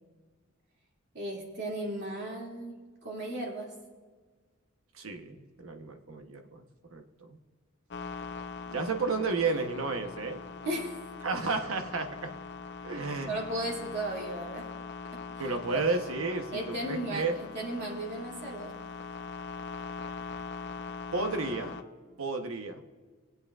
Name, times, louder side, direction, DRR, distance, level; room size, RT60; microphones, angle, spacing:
voice 1, 1.1-2.8 3.0-3.7 8.7-8.8 10.6-11.0 13.2-14.7 15.1-15.2 15.7-15.8 16.5-18.8, right 1 dB, 55° right, -3 dB, 2.5 m, -35 dB
voice 2, 4.9-6.6 6.9-7.4 8.7-10.4 11.2-12.3 12.8-13.4 15.4-17.4 21.1-21.8 22.2-22.8, right 3 dB, 75° right, 6 dB, 0.9 m, -32 dB
sound 1, 7.9-21.8, left 5 dB, 55° left, 0.6 m, -42 dB
21.5 x 8.1 x 2.4 m, 1.4 s
head